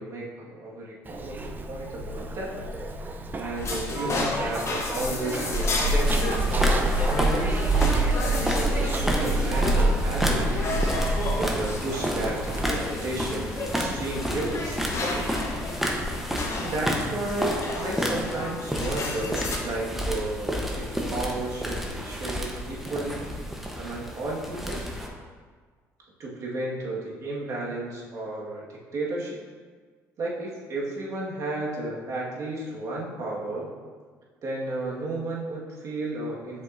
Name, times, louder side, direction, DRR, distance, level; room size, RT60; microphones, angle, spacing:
voice 1, 0.0-2.6 3.3-7.6 8.1-11.0 11.3-15.3 16.6-23.3 23.8-24.9 26.2-29.4 30.2-33.7 34.4-36.6, right 2 dB, 55° right, -4 dB, 1.7 m, -33 dB
Zipper (clothing), 1.1-12.8, right 2 dB, 30° right, 0.6 m, -27 dB
sound 1, 3.6-19.6, left 3 dB, 45° left, 1.1 m, -33 dB
sound 2, 6.1-25.1, equal, 5° right, 0.9 m, -31 dB
7.3 x 5.3 x 2.6 m, 1.5 s
supercardioid pair, 80°, 7 cm